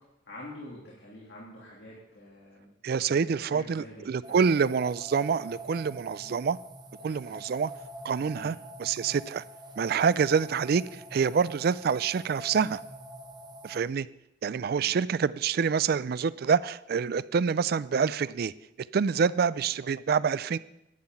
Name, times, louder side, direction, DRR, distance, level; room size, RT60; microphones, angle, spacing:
voice 1, 0.3-2.7 3.1-4.6 8.3-8.5 14.7-14.9, left 1 dB, 60° left, 2.9 m, -46 dB
voice 2, 2.8-6.6 7.0-7.7 8.0-9.4 9.8-12.8 13.6-14.1 14.4-18.5 18.9-20.6, right 6 dB, 55° right, 0.3 m, -27 dB
sound 1, 4.2-13.8, right 1 dB, 25° right, 1.4 m, -46 dB
11.0 x 5.8 x 9.0 m
head